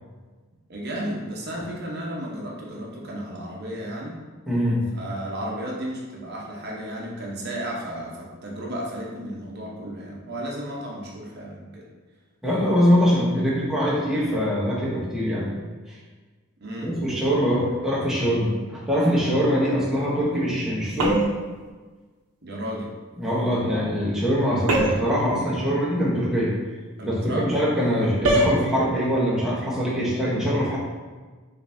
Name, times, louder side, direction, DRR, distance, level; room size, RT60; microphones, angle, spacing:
voice 1, 0.7-4.2 4.9-11.9 16.6-17.0 22.4-22.9 27.0-27.5, equal, 50° right, -3 dB, 0.8 m, -33 dB
voice 2, 4.5-4.8 12.4-15.5 15.9-16.0 16.8-21.2 23.2-26.5 27.0-30.8, equal, ahead, -7 dB, 0.9 m, -23 dB
sound 1, 21.0-21.5 24.7-25.2 28.2-28.6, right 1 dB, 90° right, 0.6 m, -21 dB
5.3 x 2.6 x 2.6 m, 1.4 s
head